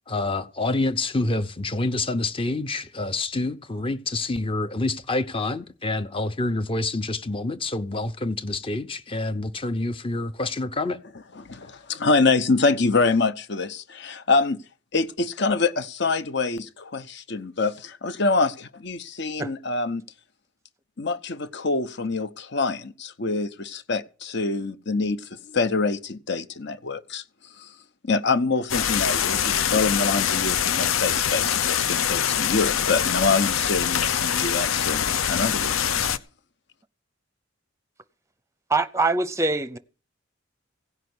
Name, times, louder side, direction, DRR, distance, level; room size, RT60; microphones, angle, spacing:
voice 1, 0.1-11.0, left 2 dB, 25° left, 0.8 m, -27 dB
voice 2, 11.3-14.6 14.9-20.0 21.0-27.2 27.6-27.7 28.0-36.1, left 3 dB, 55° left, 1.0 m, -25 dB
sound 1, 28.7-36.2, left 8 dB, 85° left, 0.8 m, -24 dB
voice 3, 38.7-39.8, right 3 dB, 15° right, 0.6 m, -23 dB
16.5 x 5.7 x 9.6 m
head